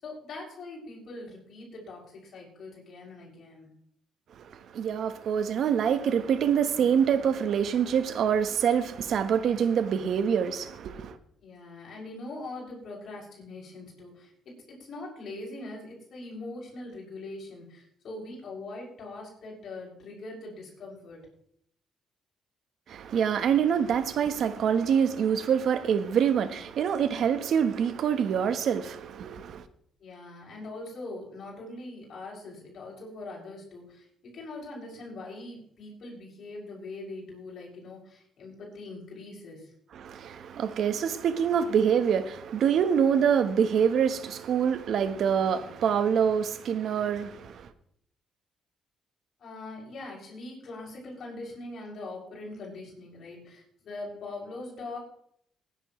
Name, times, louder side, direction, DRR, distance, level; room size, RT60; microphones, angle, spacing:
voice 1, 0.0-3.7 11.4-14.3 14.8-21.2 30.0-34.1 34.3-39.7 49.4-55.0, left 2 dB, 60° left, 6.8 m, -42 dB
voice 2, 4.7-11.2 22.9-29.6 39.9-47.7, right 7 dB, 70° right, 1.2 m, -25 dB
19.5 x 11.0 x 3.2 m
cardioid pair, 90°, 0 cm